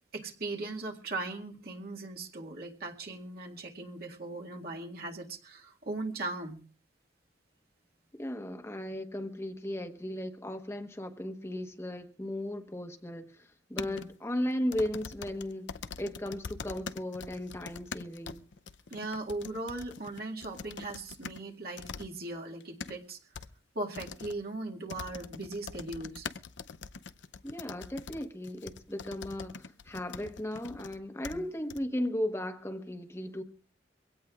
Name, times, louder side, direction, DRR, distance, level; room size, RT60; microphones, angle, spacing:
voice 1, 0.1-6.6 13.8-14.0 18.9-23.2 23.8-26.3 31.3-31.4, right 2 dB, 55° right, 2.0 m, -39 dB
voice 2, 8.1-15.7 16.0-18.4 27.4-33.4, left 1 dB, 15° left, 1.2 m, -36 dB
sound 1, 13.8-14.1 14.7-21.4 21.8-22.1 22.5-22.9 23.3-23.5 23.9-24.4 24.9-31.0 31.2-31.4 31.7-31.8, left 5 dB, 75° left, 0.6 m, -43 dB
24.0 x 17.0 x 2.4 m
head